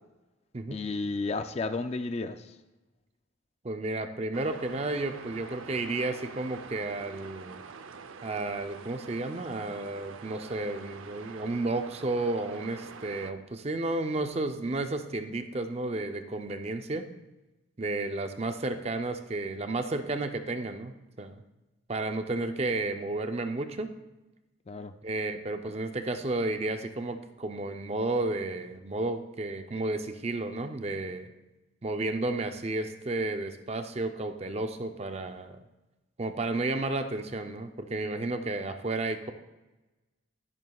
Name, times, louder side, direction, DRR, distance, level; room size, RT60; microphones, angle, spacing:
voice 1, 0.7-2.5 24.7-24.9, left 3 dB, 30° left, 9 dB, 0.3 m, -32 dB
voice 2, 3.6-7.6 8.2-17.1 17.8-21.4 21.9-23.9 25.0-31.3 31.8-35.6 36.2-39.3, right 2 dB, 30° right, 7 dB, 0.5 m, -32 dB
sound 1, 4.3-13.3, right 5 dB, 85° right, 0.6 m, -46 dB
12.5 x 10.5 x 2.3 m, 1.1 s
head